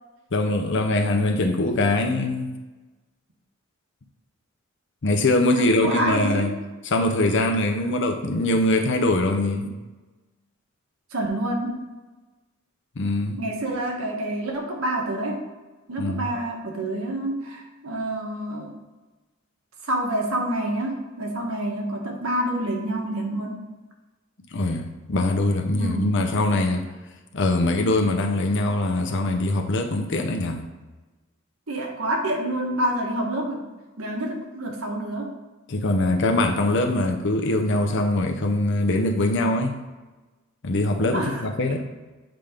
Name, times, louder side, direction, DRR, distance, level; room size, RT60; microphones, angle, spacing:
voice 1, 0.3-2.5 5.0-6.5 6.9-9.7 13.0-13.4 16.0-16.3 24.5-26.9 27.3-30.7 35.7-39.8 40.6-41.8, left 2 dB, 60° left, 4 dB, 0.7 m, -22 dB
voice 2, 5.5-6.5 11.1-11.8 13.4-15.5 15.9-18.7 19.8-23.6 25.8-26.1 31.7-33.6 34.0-35.3 41.1-41.8, right 1 dB, 85° right, 0 dB, 1.4 m, -27 dB
7.6 x 3.5 x 5.1 m, 1.2 s
head